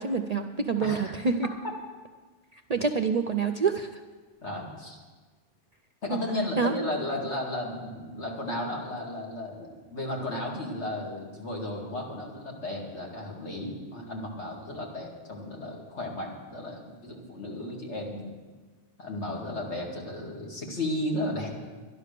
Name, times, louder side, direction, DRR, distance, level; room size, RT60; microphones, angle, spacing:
voice 1, 0.0-1.5 2.7-3.9 6.1-6.2 6.6-6.9, right 5 dB, 50° right, 7 dB, 0.5 m, -27 dB
voice 2, 0.8-1.1 4.4-5.0 6.0-18.3 19.0-21.5, left 1 dB, 70° left, -1 dB, 2.6 m, -34 dB
12.0 x 11.5 x 6.7 m, 1.4 s
omnidirectional pair, 1.2 m